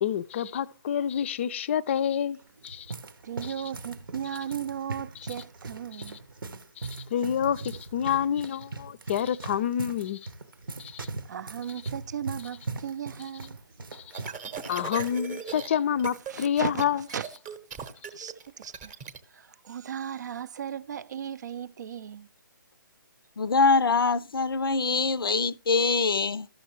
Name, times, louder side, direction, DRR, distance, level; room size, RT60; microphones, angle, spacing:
voice 1, 0.0-2.4 2.6-2.9 3.4-3.5 6.8-10.2 10.8-11.1 13.9-14.2 14.7-17.0, left 9 dB, 35° left, 0.4 m, -28 dB
sound 1, 2.3-15.2 15.5-15.7 16.4-16.7, right 3 dB, 75° right, 0.8 m, -40 dB
voice 2, 3.2-6.2 11.3-13.6 16.3-17.3 17.8-18.9 19.3-22.3, right 9 dB, 55° right, 0.4 m, -36 dB
sound 2, 14.1-15.7 16.0-16.3 16.6-19.2, right 7 dB, 15° right, 0.8 m, -38 dB
voice 3, 23.4-26.5, left 4 dB, 90° left, 0.5 m, -24 dB
13.5 x 6.4 x 3.1 m
hypercardioid pair, 155°, 11 cm